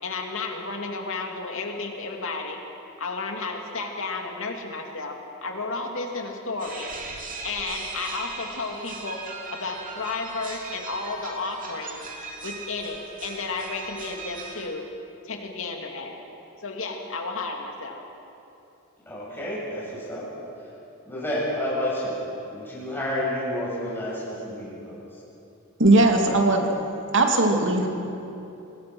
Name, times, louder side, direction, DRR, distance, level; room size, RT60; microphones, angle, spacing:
voice 1, 0.0-2.6 3.0-6.9 7.4-9.2 9.5-12.0 12.4-14.9 15.2-16.2 16.6-18.0, left 3 dB, 65° left, 2 dB, 2.6 m, -32 dB
sound 1, 6.6-14.7, right 3 dB, 40° right, 2.9 m, -38 dB
voice 2, 19.1-20.3 21.1-22.2 22.5-25.0, left 1 dB, 10° left, -7 dB, 7.6 m, -30 dB
voice 3, 25.8-26.7 27.1-27.9, right 2 dB, 60° right, 2 dB, 2.6 m, -18 dB
26.0 x 20.5 x 6.3 m, 2.9 s
head